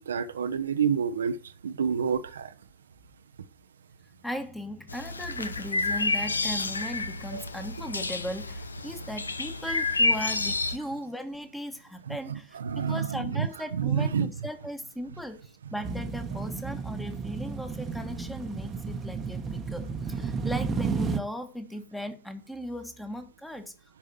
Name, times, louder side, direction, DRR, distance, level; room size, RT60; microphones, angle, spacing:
voice 1, 0.0-1.4 1.6-2.5 7.3-7.4 12.1-13.5 13.7-14.3, right 7 dB, 70° right, 0.7 m, -28 dB
voice 2, 4.2-23.7, equal, 5° left, 1.4 m, -37 dB
sound 1, 4.9-10.8, left 3 dB, 75° left, 0.7 m, -29 dB
sound 2, 15.8-21.2, right 5 dB, 20° right, 1.0 m, -32 dB
11.0 x 4.8 x 6.0 m
figure-of-eight pair, 90°, 0 cm